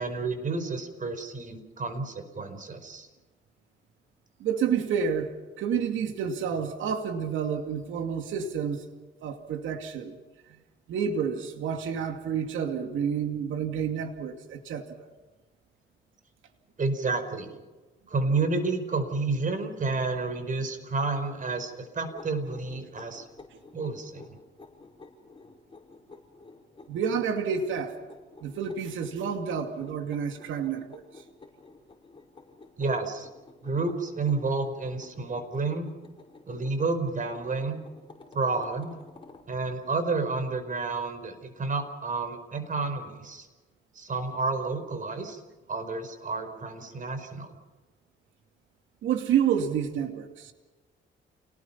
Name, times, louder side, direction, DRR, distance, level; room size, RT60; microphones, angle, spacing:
voice 1, 0.0-3.1 16.8-17.5 18.1-23.2 23.7-24.4 32.8-33.3 33.6-35.9 36.5-37.8 38.3-39.0 39.5-43.5 43.9-45.4 45.7-47.5, right 3 dB, 40° right, 5.0 m, -30 dB
voice 2, 4.4-5.3 5.6-8.9 9.2-10.1 10.9-15.1 26.9-28.0 28.4-31.0 49.0-50.5, right 7 dB, 80° right, 2.5 m, -29 dB
sound 1, 22.0-39.5, left 3 dB, 25° left, 5.7 m, -52 dB
29.0 x 19.5 x 5.8 m
cardioid pair, 90°, 20 cm